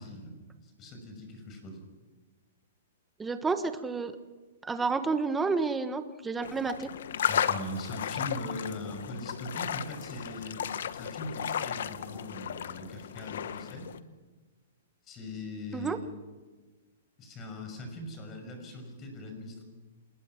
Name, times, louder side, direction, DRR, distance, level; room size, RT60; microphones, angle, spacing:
voice 1, 0.0-1.8 7.3-10.6 10.9-13.9 15.0-16.1 17.2-19.6, left 1 dB, 25° left, 5 dB, 6.0 m, -41 dB
voice 2, 3.2-4.2 4.6-6.9 15.7-16.0, right 4 dB, 10° right, 10 dB, 1.3 m, -30 dB
sound 1, 6.4-14.0, left 9 dB, 70° left, 1.2 m, -34 dB
28.0 x 20.5 x 6.0 m, 1.3 s
hypercardioid pair, 155°, 0 cm